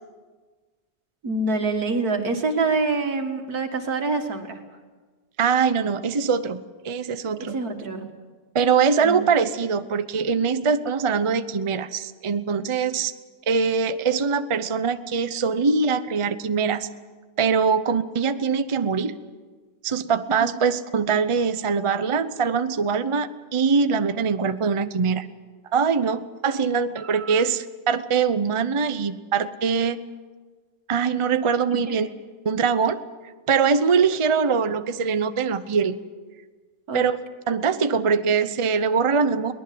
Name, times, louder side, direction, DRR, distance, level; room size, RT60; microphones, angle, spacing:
voice 1, 1.2-4.6 7.5-8.1 9.0-9.2 20.4-20.6 31.9-32.1 36.9-37.0, right 3 dB, 80° right, 5 dB, 2.5 m, -26 dB
voice 2, 5.4-7.5 8.5-13.1 13.5-16.9 17.4-19.1 19.8-25.3 25.7-30.0 30.9-32.1 32.4-33.0 33.5-36.0 36.9-37.2 37.5-39.5, right 5 dB, 30° right, 11 dB, 0.6 m, -22 dB
22.5 x 19.5 x 7.7 m, 1.4 s
omnidirectional pair, 1.6 m